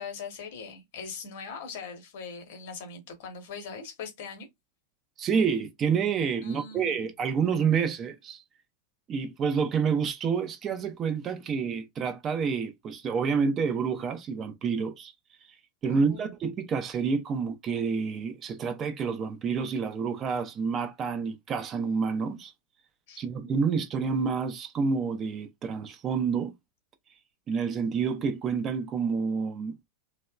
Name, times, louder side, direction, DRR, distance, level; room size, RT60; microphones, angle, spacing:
voice 1, 0.0-4.5 6.4-7.0 15.9-16.3 23.1-23.2, left 5 dB, 50° left, 0.8 m, -41 dB
voice 2, 5.2-8.4 9.1-15.1 15.8-22.5 23.2-26.5 27.5-29.7, right 6 dB, 25° right, 0.4 m, -28 dB
2.8 x 2.0 x 2.2 m
figure-of-eight pair, 90°, 0 cm